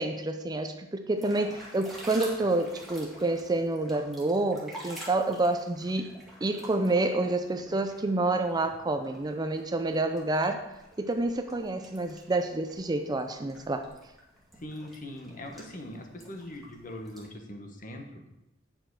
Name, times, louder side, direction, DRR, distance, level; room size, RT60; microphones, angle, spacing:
voice 1, 0.0-6.2 6.4-10.6 11.0-13.9, right 2 dB, 20° right, 7 dB, 0.4 m, -28 dB
sound 1, 1.1-17.3, right 1 dB, ahead, 2.1 m, -49 dB
voice 2, 14.6-18.2, left 1 dB, 45° left, 3 dB, 1.2 m, -41 dB
8.9 x 6.1 x 4.7 m, 0.91 s
head